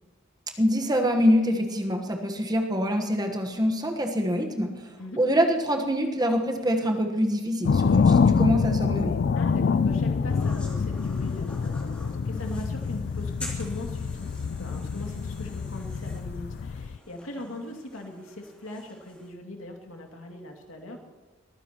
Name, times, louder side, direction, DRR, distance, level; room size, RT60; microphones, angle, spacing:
voice 1, 0.6-9.2, equal, 20° right, 3 dB, 1.2 m, -25 dB
sound 1, 7.6-17.0, left 5 dB, 50° left, 0.3 m, -26 dB
voice 2, 9.4-21.0, left 1 dB, 80° left, 2 dB, 2.4 m, -40 dB
sound 2, 10.3-19.3, left 1 dB, 5° left, 2.7 m, -47 dB
22.0 x 15.0 x 3.0 m, 1.3 s
head